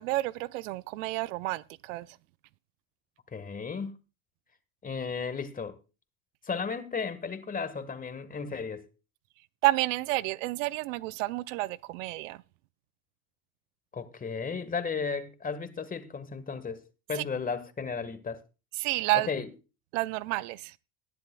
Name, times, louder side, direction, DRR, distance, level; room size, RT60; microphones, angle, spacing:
voice 1, 0.0-2.1 9.6-12.4 17.2-17.3 18.8-19.3 19.9-20.8, right 19 dB, 65° right, 0.6 m, -30 dB
voice 2, 3.3-3.9 4.8-5.8 6.4-8.9 13.9-16.8 17.1-18.4 19.1-19.5, left 5 dB, 20° left, 1.5 m, -34 dB
19.5 x 10.5 x 2.3 m
hypercardioid pair, 90°, 42 cm